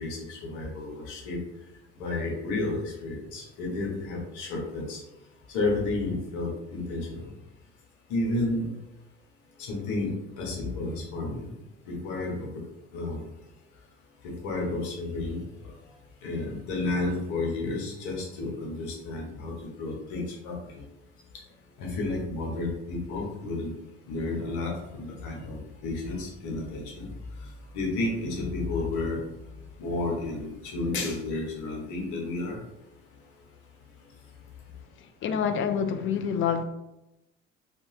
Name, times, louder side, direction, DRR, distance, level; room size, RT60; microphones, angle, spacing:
voice 1, 0.0-1.4 2.0-5.0 5.5-7.2 8.1-8.7 9.7-11.5 11.9-12.5 12.9-13.2 14.2-15.4 16.2-20.6 21.8-23.7 24.1-27.1 27.7-29.2 29.8-32.6, left 2 dB, 70° left, -1 dB, 1.0 m, -31 dB
voice 2, 35.0-36.6, left 7 dB, 40° left, 8 dB, 0.4 m, -27 dB
2.7 x 2.2 x 3.1 m, 0.92 s
hypercardioid pair, 65°, 30 cm